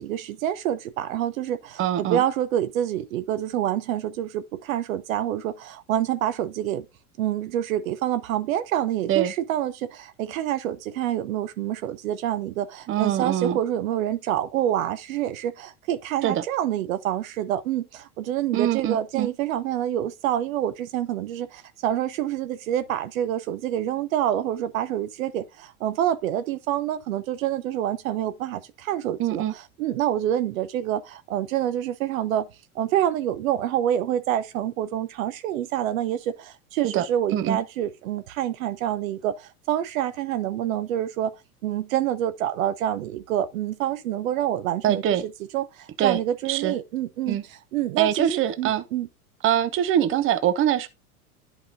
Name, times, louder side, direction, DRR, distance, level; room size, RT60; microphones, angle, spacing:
voice 1, 0.0-6.9 7.2-32.5 32.7-41.3 41.6-49.1, right 11 dB, 65° right, 0.9 m, -27 dB
voice 2, 1.8-2.2 9.1-9.3 12.9-13.6 16.2-16.4 18.5-19.3 29.2-29.5 36.8-37.1 37.3-37.6 44.8-45.2 46.0-46.2 46.5-46.7 47.3-47.4 48.0-48.8 49.4-50.9, right 10 dB, 30° right, 0.8 m, -23 dB
11.0 x 5.2 x 2.6 m
hypercardioid pair, 90°, 44 cm